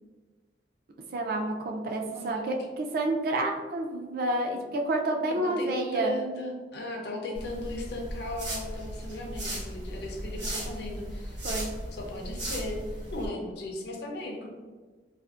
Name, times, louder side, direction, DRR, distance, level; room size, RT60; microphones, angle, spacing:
voice 1, 1.1-6.1 11.4-11.7, right 2 dB, 55° right, 1 dB, 0.3 m, -29 dB
voice 2, 2.1-2.4 5.3-11.4 11.9-12.8 13.1-14.5, left 1 dB, 65° left, 1 dB, 0.5 m, -37 dB
sound 1, 7.3-13.3, right 1 dB, 90° right, 1.0 m, -36 dB
2.5 x 2.4 x 2.3 m, 1.4 s
head